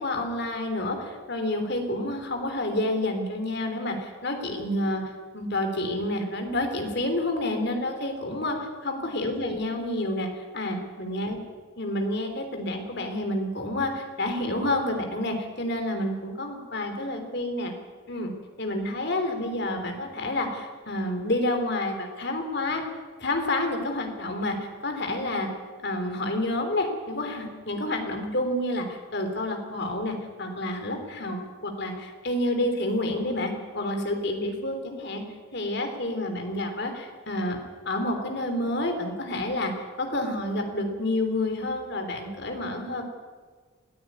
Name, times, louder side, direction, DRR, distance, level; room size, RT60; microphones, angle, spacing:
voice 1, 0.0-5.0 5.3-8.6 8.8-11.4 11.8-17.7 18.1-18.3 18.6-22.8 23.2-25.5 25.8-35.2 35.5-37.6 37.8-39.7 40.0-43.0, left 1 dB, 50° left, 4 dB, 3.5 m, -29 dB
20.0 x 15.0 x 9.5 m, 1.5 s
head